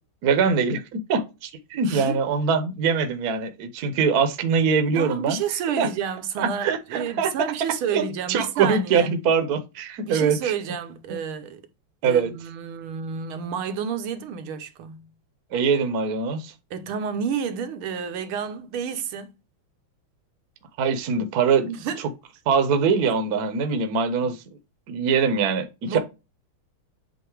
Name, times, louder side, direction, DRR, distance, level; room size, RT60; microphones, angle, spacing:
voice 1, 0.2-5.4 5.8-5.9 6.4-7.3 7.9-10.5 11.1-11.2 12.0-12.3 15.5-16.5 20.8-21.7 22.5-24.4 24.9-26.0, right 5 dB, 55° right, 1.3 m, -23 dB
voice 2, 1.8-2.2 4.9-9.1 10.0-11.6 12.0-15.1 16.7-19.3 21.7-22.1 25.8-26.0, right 7 dB, 75° right, 1.8 m, -30 dB
8.0 x 2.8 x 4.7 m
omnidirectional pair, 2.3 m